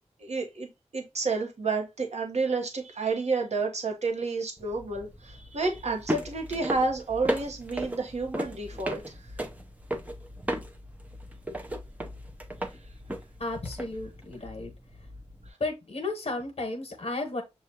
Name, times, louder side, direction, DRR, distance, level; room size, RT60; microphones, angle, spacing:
voice 1, 0.2-9.1, right 3 dB, 70° right, 1.0 m, -30 dB
sound 1, 4.6-15.5, right 1 dB, 15° right, 0.6 m, -36 dB
voice 2, 13.4-14.7 15.6-17.4, left 2 dB, 60° left, 0.9 m, -33 dB
6.4 x 2.4 x 2.7 m
wide cardioid pair, 100°, 12 cm